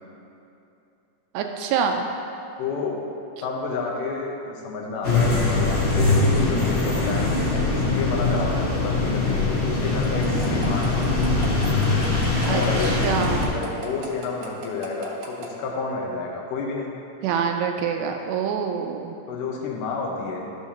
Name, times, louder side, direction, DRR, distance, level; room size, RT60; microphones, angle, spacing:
voice 1, 1.3-2.0 12.5-13.5 17.2-19.2, right 6 dB, 85° right, 3 dB, 2.6 m, -26 dB
voice 2, 2.6-3.0 3.4-11.4 12.5-12.9 13.4-16.9 19.3-20.4, left 4 dB, 75° left, -1 dB, 1.9 m, -30 dB
sound 1, 5.0-13.5, left 3 dB, 45° left, 2.7 m, -22 dB
sound 2, 10.0-15.5, right 4 dB, 65° right, 2.6 m, -38 dB
13.5 x 7.0 x 2.8 m, 2.8 s
omnidirectional pair, 5.0 m